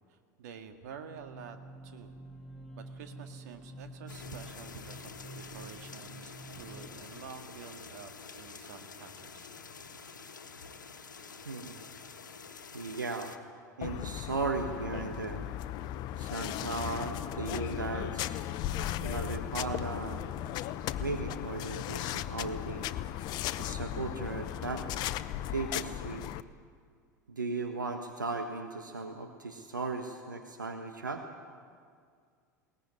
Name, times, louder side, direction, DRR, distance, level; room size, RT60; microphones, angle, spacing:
voice 1, 0.1-1.6 1.8-2.2 2.9-9.5, right 7 dB, 60° right, 7 dB, 2.0 m, -49 dB
sound 1, 1.1-7.1, right 1 dB, ahead, 2.4 m, -48 dB
sound 2, 4.1-13.4, left 5 dB, 75° left, 1.4 m, -48 dB
voice 2, 11.4-11.8 12.7-13.3 13.8-15.5 16.2-18.5 19.0-20.2 21.0-22.9 23.6-24.9 25.5-26.3 27.3-31.2, right 3 dB, 80° right, 5 dB, 1.5 m, -36 dB
sound 3, 13.8-26.4, left 12 dB, 45° left, 0.8 m, -36 dB
21.5 x 18.5 x 9.8 m, 2.1 s
figure-of-eight pair, 80°, 10 cm